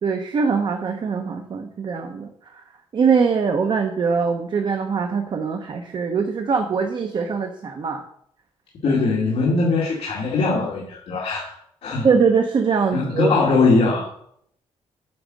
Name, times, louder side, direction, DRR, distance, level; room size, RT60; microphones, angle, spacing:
voice 1, 0.0-2.3 2.9-8.0 12.0-13.3, right 5 dB, 45° right, 5 dB, 0.8 m, -22 dB
voice 2, 8.8-12.1 12.9-14.1, left 3 dB, 60° left, -4 dB, 1.9 m, -21 dB
8.7 x 5.0 x 7.4 m, 0.68 s
wide cardioid pair, 175°, 11 cm